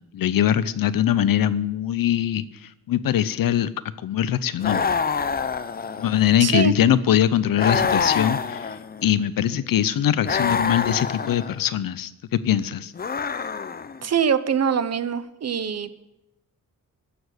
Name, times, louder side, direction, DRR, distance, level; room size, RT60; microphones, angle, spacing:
voice 1, 0.1-2.4 2.9-3.7 4.0-4.8 6.0-8.7 9.0-12.9, left 10 dB, 75° left, 15 dB, 0.7 m, -22 dB
sound 1, 4.6-6.4 7.6-9.1 10.2-11.6 12.9-14.0, left 5 dB, 25° left, 0.5 m, -26 dB
voice 2, 6.4-6.7 14.0-15.9, right 7 dB, 45° right, 14 dB, 0.8 m, -23 dB
13.0 x 7.0 x 9.6 m, 0.93 s
wide cardioid pair, 145°, 35 cm